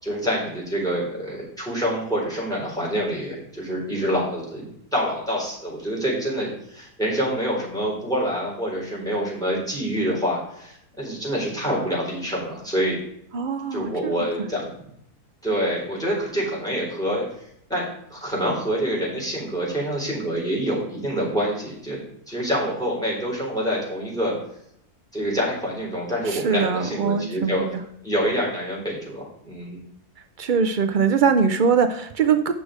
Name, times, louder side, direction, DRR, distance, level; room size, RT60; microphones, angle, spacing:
voice 1, 0.0-4.6 4.9-13.0 13.7-14.7 15.4-17.2 17.7-22.0 22.3-24.3 25.1-27.7 28.0-29.8, equal, ahead, -4 dB, 4.0 m, -26 dB
voice 2, 13.3-14.3 26.2-27.8 30.4-32.5, right 6 dB, 85° right, 8 dB, 0.4 m, -22 dB
8.6 x 6.3 x 4.9 m, 0.73 s
omnidirectional pair, 1.6 m